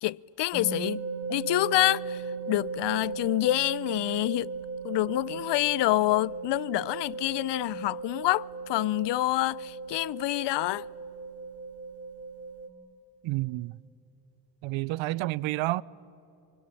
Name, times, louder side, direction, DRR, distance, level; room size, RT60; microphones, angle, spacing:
voice 1, 0.0-1.0 1.3-2.2 2.5-4.5 4.8-10.8, left 17 dB, 65° left, 0.5 m, -27 dB
sound 1, 0.5-12.7, right 4 dB, 30° right, 3.0 m, -37 dB
voice 2, 13.2-13.8 14.6-15.8, right 18 dB, 80° right, 0.6 m, -29 dB
25.5 x 25.0 x 8.4 m
cardioid pair, 85°, 46 cm